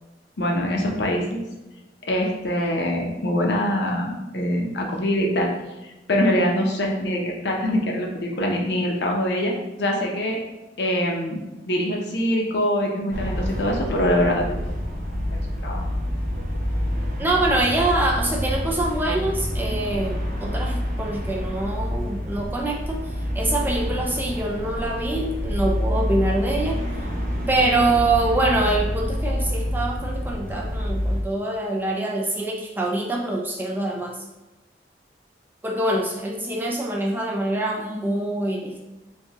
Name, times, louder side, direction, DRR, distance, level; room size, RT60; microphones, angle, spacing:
voice 1, 0.4-1.4 2.1-5.5 5.8-10.4 10.8-11.4 11.7-14.6 15.6-15.8, equal, 70° left, 0 dB, 0.6 m, -24 dB
sound 1, 13.1-31.2, equal, 50° right, 0.7 m, -27 dB
voice 2, 17.2-23.0 23.3-26.8 27.5-34.2 35.6-38.8, right 2 dB, 10° right, -1 dB, 0.3 m, -25 dB
3.4 x 2.7 x 2.9 m, 1.1 s
head